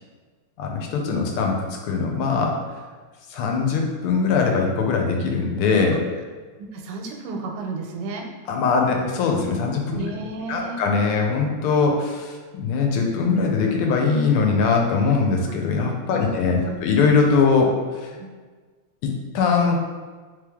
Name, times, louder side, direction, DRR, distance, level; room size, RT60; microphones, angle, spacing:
voice 1, 0.6-1.6 1.8-2.6 3.3-6.0 8.5-10.0 10.5-18.2 19.0-19.8, left 4 dB, 85° left, 1 dB, 1.5 m, -21 dB
voice 2, 6.6-8.2 9.9-10.8 16.1-16.9 18.2-18.3, right 3 dB, 85° right, 2 dB, 1.5 m, -33 dB
3.4 x 3.3 x 3.5 m, 1.4 s
omnidirectional pair, 2.4 m